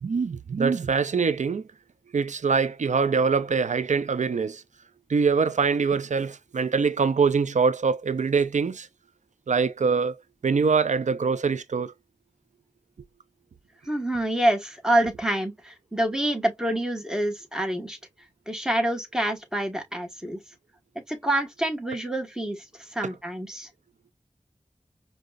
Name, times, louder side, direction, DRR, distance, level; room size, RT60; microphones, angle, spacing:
voice 1, 0.0-1.7 2.1-4.6 5.1-8.9 9.5-10.2 10.4-11.9 23.0-23.1, right 5 dB, 75° right, 0.4 m, -24 dB
voice 2, 13.9-18.0 18.5-20.4 21.1-23.7, right 1 dB, 5° right, 1.2 m, -27 dB
4.9 x 2.2 x 2.3 m
wide cardioid pair, 40°, 12 cm